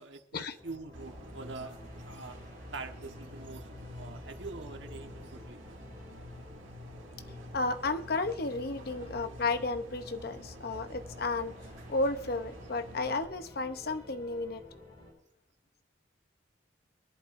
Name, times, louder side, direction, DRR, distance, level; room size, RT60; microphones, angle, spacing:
voice 1, 0.0-1.8 2.0-2.4 2.7-5.6, right 3 dB, 70° right, 5 dB, 1.3 m, -44 dB
sound 1, 0.6-15.1, left 1 dB, 30° left, 6.3 m, -53 dB
sound 2, 0.9-13.2, equal, 85° right, 2.1 m, -48 dB
voice 2, 7.5-11.5 11.9-14.6, left 3 dB, 50° left, 9 dB, 0.8 m, -33 dB
22.0 x 11.0 x 2.6 m, 0.75 s
head